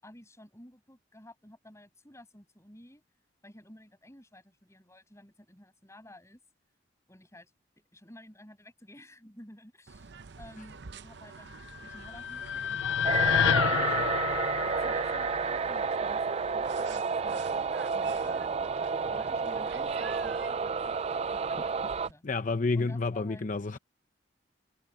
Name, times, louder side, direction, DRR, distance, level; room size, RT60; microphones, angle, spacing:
voice 1, 0.0-3.0 3.4-6.4 7.1-7.5 7.9-14.3 14.7-18.4 19.0-22.2 22.7-23.5, left 1 dB, 15° left, 7.3 m, -53 dB
sound 1, 9.9-22.1, right 5 dB, 65° right, 0.7 m, -48 dB
sound 2, 11.7-16.0, left 9 dB, 80° left, 0.4 m, -29 dB
sound 3, 13.0-22.1, right 5 dB, 35° right, 0.4 m, -31 dB
voice 2, 22.2-23.8, left 3 dB, 45° left, 0.7 m, -29 dB
head